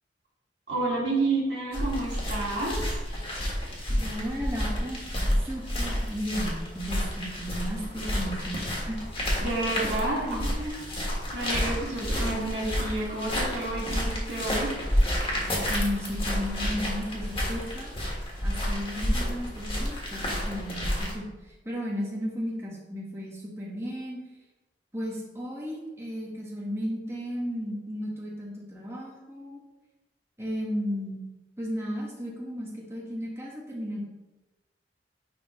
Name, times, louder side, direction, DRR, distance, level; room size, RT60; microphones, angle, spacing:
voice 1, 0.7-2.9 9.4-10.9 11.3-14.7, right 2 dB, 90° right, -4 dB, 2.0 m, -30 dB
sound 1, 1.7-21.1, equal, 30° left, 1.6 m, -30 dB
voice 2, 4.0-5.2 5.5-9.0 9.8-10.5 15.7-18.0 18.4-24.2 24.9-29.6 30.4-31.2 31.6-34.0, equal, 15° right, -4 dB, 1.5 m, -34 dB
9.7 x 3.6 x 3.2 m, 1.1 s
head